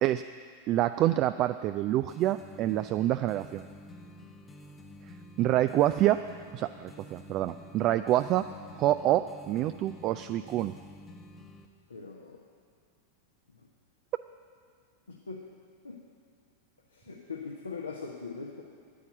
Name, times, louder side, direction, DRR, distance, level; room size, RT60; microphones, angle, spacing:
voice 1, 0.7-3.6 5.4-6.2 6.5-8.5 8.8-10.7, right 14 dB, 35° right, 11 dB, 0.3 m, -27 dB
sound 1, 2.1-11.7, left 1 dB, 15° left, 1.0 m, -49 dB
voice 2, 11.9-12.4 15.1-15.4 15.8-16.0 16.9-18.6, left 4 dB, 75° left, -1 dB, 1.1 m, -40 dB
9.6 x 8.6 x 8.9 m, 2.2 s
figure-of-eight pair, 90°, 0 cm